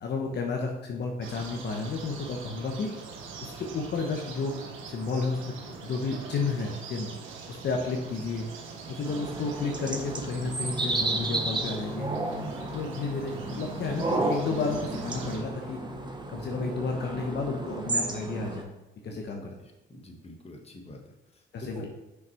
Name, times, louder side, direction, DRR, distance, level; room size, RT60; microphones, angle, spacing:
voice 1, 0.0-2.9 3.4-5.4 5.8-7.1 7.5-8.5 8.9-12.1 12.7-15.8 16.3-18.7 19.0-19.5 21.5-21.9, left 4 dB, 60° left, 2 dB, 1.0 m, -32 dB
sound 1, 1.2-15.4, right 4 dB, 85° right, 1.2 m, -43 dB
sound 2, 9.0-18.6, right 2 dB, 20° right, 1.2 m, -32 dB
voice 2, 19.6-21.0 21.3-21.9, left 2 dB, 30° left, 2 dB, 1.5 m, -45 dB
6.1 x 5.8 x 4.5 m, 1.0 s
cardioid pair, 90°, 20 cm